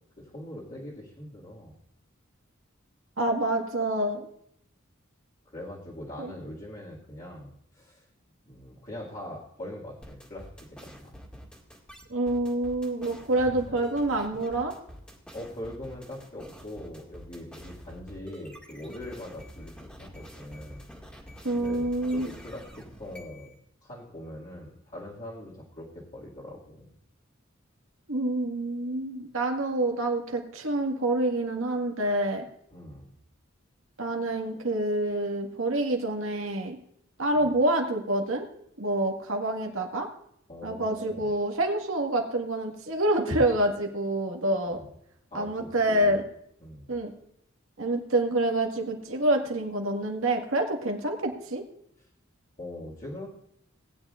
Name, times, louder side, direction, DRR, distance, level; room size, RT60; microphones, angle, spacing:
voice 1, 0.2-1.8 5.5-8.1 8.5-10.5 10.8-11.1 13.3-13.5 15.3-21.2 21.5-23.5 23.8-26.9 32.7-33.1 37.3-37.5 40.5-41.3 44.7-44.9 45.3-46.2 46.6-46.9 52.6-53.3, left 1 dB, 40° left, -8 dB, 2.3 m, -42 dB
voice 2, 3.2-4.3 6.2-6.3 12.1-14.7 21.4-22.3 28.1-32.5 34.0-36.8 37.2-38.5 38.8-40.1 40.6-44.8 45.3-46.2 46.9-47.1 47.8-51.6, right 1 dB, 90° right, 2 dB, 1.8 m, -27 dB
sound 1, 10.0-23.5, equal, 5° left, 2.0 m, -47 dB
19.0 x 9.5 x 2.5 m, 0.72 s
head